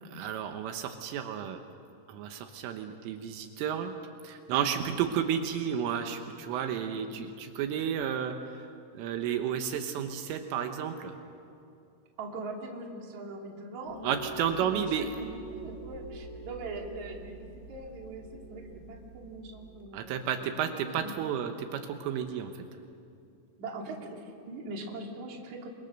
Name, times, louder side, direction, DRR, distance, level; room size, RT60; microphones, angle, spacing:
voice 1, 0.0-1.6 2.1-3.9 4.2-8.3 9.0-11.1 14.0-15.2 19.9-22.5, right 8 dB, 80° right, 6 dB, 3.7 m, -32 dB
voice 2, 12.2-14.2 14.8-20.5 20.9-21.1 23.6-25.7, right 2 dB, 40° right, 0 dB, 3.5 m, -42 dB
sound 1, 13.8-19.8, right 3 dB, 60° left, 4.7 m, -45 dB
29.5 x 24.5 x 6.7 m, 2.6 s
omnidirectional pair, 5.9 m